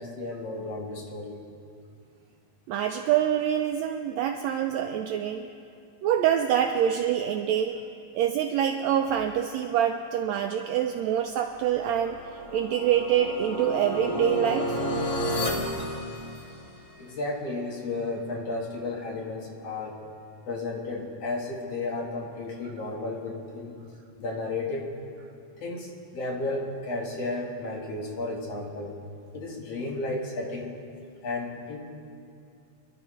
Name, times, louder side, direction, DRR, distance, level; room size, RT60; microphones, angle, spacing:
voice 1, 0.0-1.4 17.0-20.0 20.5-23.8 24.2-24.9 25.6-28.9 29.3-30.7 31.2-31.8, left 2 dB, 55° left, 0 dB, 2.3 m, -33 dB
voice 2, 2.7-5.5 6.0-7.8 8.1-12.2 12.5-14.8, right 10 dB, 90° right, 5 dB, 1.5 m, -25 dB
sound 1, 11.7-16.9, left 1 dB, 35° left, 1.0 m, -31 dB
25.5 x 12.0 x 3.1 m, 2.5 s
omnidirectional pair, 3.7 m